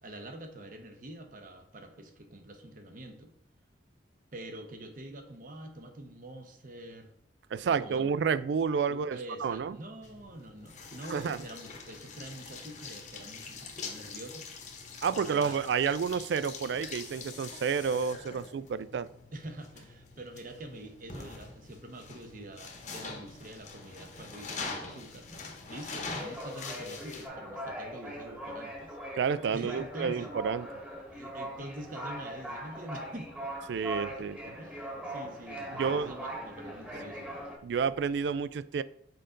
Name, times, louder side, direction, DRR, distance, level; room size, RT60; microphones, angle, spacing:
voice 1, 0.0-3.3 4.3-7.1 7.6-8.0 8.9-14.5 15.1-15.6 19.3-25.3 25.7-29.0 29.5-30.3 31.1-33.5 34.1-37.3, right 1 dB, 50° right, 5 dB, 0.9 m, -45 dB
voice 2, 7.5-9.8 11.1-11.4 15.0-19.1 29.1-30.7 33.7-34.5 35.7-36.1 37.6-38.8, right 6 dB, 70° right, 16 dB, 0.3 m, -30 dB
sound 1, 10.0-27.3, left 4 dB, 40° left, 1.0 m, -44 dB
sound 2, 21.4-22.5 22.8-23.0 23.3-37.5, equal, 10° right, 1.3 m, -41 dB
6.6 x 5.1 x 3.8 m, 0.70 s
head